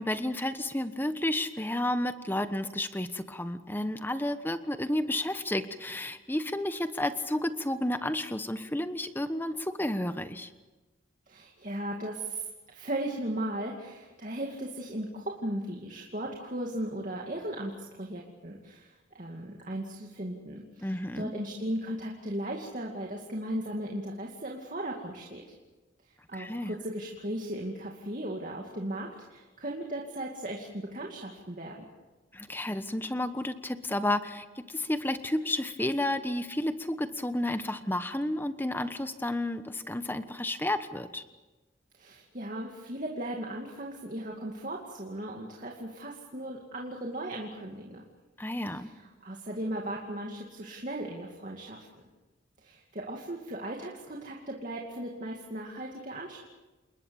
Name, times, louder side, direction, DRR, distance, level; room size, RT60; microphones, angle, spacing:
voice 1, 0.0-10.5 20.8-21.3 26.3-26.7 32.3-41.2 48.4-48.9, left 1 dB, 10° left, 10 dB, 1.1 m, -31 dB
voice 2, 11.3-25.4 26.3-31.7 41.9-48.0 48.7-51.9 52.6-56.4, right 1 dB, 40° right, -1 dB, 2.5 m, -37 dB
29.0 x 20.5 x 7.2 m, 1.2 s
head